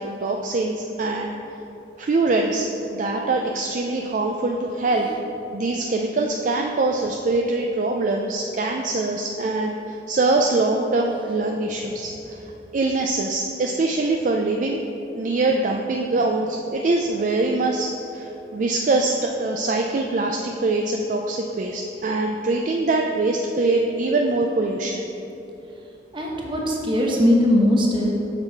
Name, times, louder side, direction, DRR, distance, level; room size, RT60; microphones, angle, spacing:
voice 1, 0.0-1.3 2.0-5.1 5.5-12.4 12.7-14.8 15.1-25.0, right 2 dB, 45° right, 2 dB, 0.3 m, -23 dB
voice 2, 26.1-28.1, left 1 dB, 30° right, -1 dB, 0.9 m, -20 dB
6.8 x 5.6 x 4.5 m, 3.0 s
head